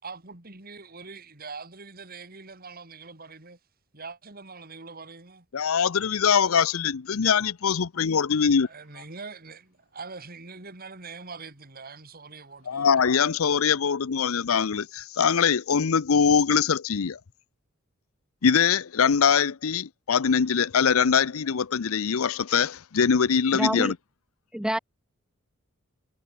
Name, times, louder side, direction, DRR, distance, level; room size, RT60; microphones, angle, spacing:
voice 1, 0.0-3.6 3.9-5.5 8.7-12.9, right 4 dB, 45° right, 3.1 m, -43 dB
voice 2, 5.5-8.7 12.7-17.2 18.4-24.0, left 6 dB, 85° left, 0.6 m, -23 dB
voice 3, 23.6-23.9 24.5-24.8, right 1 dB, 5° right, 0.5 m, -26 dB
head